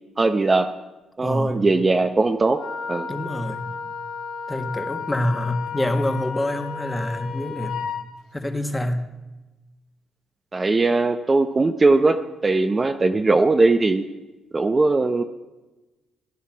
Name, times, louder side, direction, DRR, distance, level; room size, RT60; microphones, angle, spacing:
voice 1, 0.2-0.7 1.2-3.1 10.5-14.0 14.5-15.2, right 3 dB, 25° right, 7 dB, 0.7 m, -20 dB
voice 2, 1.2-1.6 3.1-3.7 4.5-7.9 8.3-9.1, left 1 dB, 15° left, 7 dB, 1.4 m, -26 dB
Wind instrument woodwind instrument, 2.5-8.1, left 6 dB, 85° left, 1.6 m, -33 dB
16.0 x 10.0 x 6.1 m, 1.1 s
cardioid pair, 90°, 0 cm